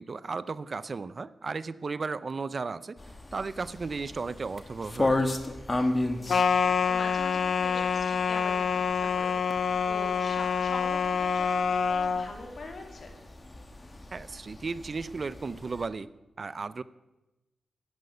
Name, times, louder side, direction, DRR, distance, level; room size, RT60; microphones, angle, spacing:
voice 1, 0.0-3.0 3.3-5.3 14.1-16.1 16.4-16.8, right 4 dB, 50° right, 17 dB, 0.5 m, -35 dB
sound 1, 3.0-15.9, left 2 dB, 30° left, 1.3 m, -35 dB
voice 2, 6.1-13.1, left 3 dB, 60° left, 2 dB, 2.7 m, -43 dB
sound 2, 6.3-12.3, left 6 dB, 80° left, 0.5 m, -26 dB
10.5 x 9.5 x 6.7 m, 1.0 s
cardioid pair, 60°, 0 cm